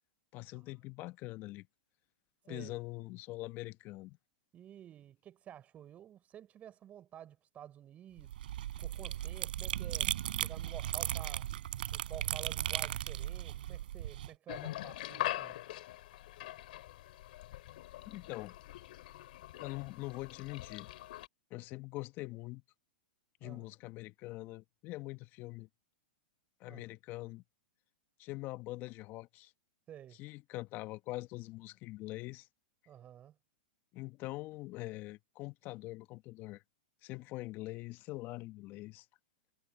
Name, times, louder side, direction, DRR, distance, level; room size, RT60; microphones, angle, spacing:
voice 1, 0.3-1.7 2.4-4.2 18.0-18.6 19.6-20.9 21.5-22.6 23.4-25.7 26.6-27.4 28.2-29.5 30.1-32.5 33.9-36.6 37.0-39.0, left 20 dB, 40° left, 1.2 m, -43 dB
voice 2, 2.5-2.8 4.5-8.4 8.8-11.5 11.9-15.6 23.4-23.7 26.7-26.8 29.9-30.2 32.9-33.4, right 10 dB, 25° right, 5.4 m, -51 dB
sound 1, 8.2-14.3, right 12 dB, 70° right, 3.9 m, -37 dB
sound 2, 14.5-21.3, left 15 dB, 65° left, 4.9 m, -43 dB
hypercardioid pair, 120°, 5 cm